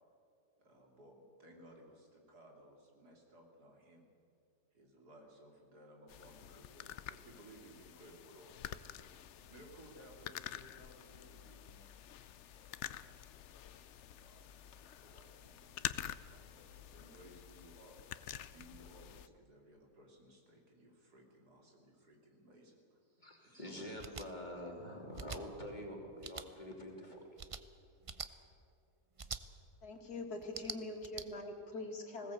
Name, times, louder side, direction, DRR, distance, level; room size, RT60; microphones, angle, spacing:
voice 1, 0.6-4.1 4.7-14.5 15.0-18.0 18.5-24.0, right 1 dB, 90° right, 0 dB, 3.8 m, -60 dB
sound 1, 6.1-19.3, left 10 dB, 60° left, 0.8 m, -48 dB
voice 2, 23.2-27.3, equal, 30° left, 0 dB, 3.2 m, -46 dB
sound 2, 24.0-24.3 25.1-25.4 26.2-26.5 27.4-27.6 28.0-28.3 29.2-29.4 30.4-31.2, right 5 dB, 45° right, 0.4 m, -44 dB
voice 3, 29.8-32.3, left 2 dB, 75° left, 3 dB, 2.8 m, -43 dB
20.0 x 17.5 x 8.1 m, 2.5 s
omnidirectional pair, 1.7 m